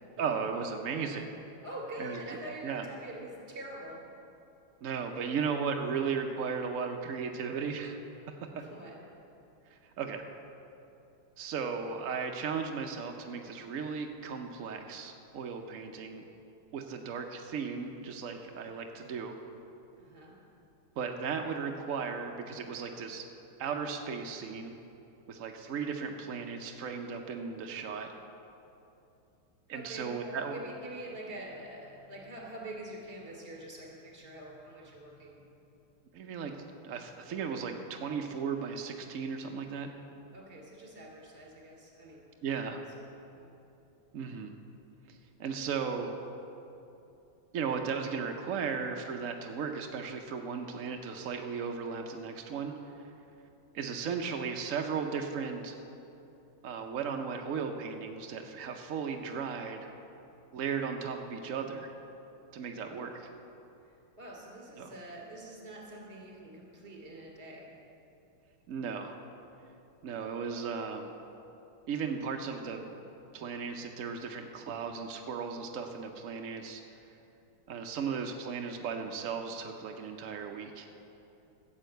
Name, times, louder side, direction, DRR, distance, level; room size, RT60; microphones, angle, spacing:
voice 1, 0.2-1.3 2.0-2.4 2.6-2.8 4.8-8.0 8.4-8.6 9.7-10.2 11.4-16.2 16.7-19.4 21.0-23.2 23.6-24.8 25.3-28.1 29.7-30.6 36.1-36.5 36.8-39.9 42.4-42.8 44.1-44.5 45.1-46.1 47.5-52.7 53.7-55.7 56.6-59.9 60.5-61.9 62.5-63.1 64.8-64.9 68.7-69.2 70.0-71.1 71.9-72.9 73.3-76.8 77.7-80.9, right 6 dB, 75° right, 3 dB, 0.7 m, -36 dB
voice 2, 1.6-4.0 8.6-9.0 20.0-20.3 29.7-35.4 40.3-42.2 42.6-42.8 43.3-43.5 62.9-63.1 63.8-63.9 64.2-67.7, right 1 dB, 30° right, -2 dB, 3.0 m, -45 dB
13.0 x 7.4 x 7.8 m, 2.8 s
omnidirectional pair, 2.4 m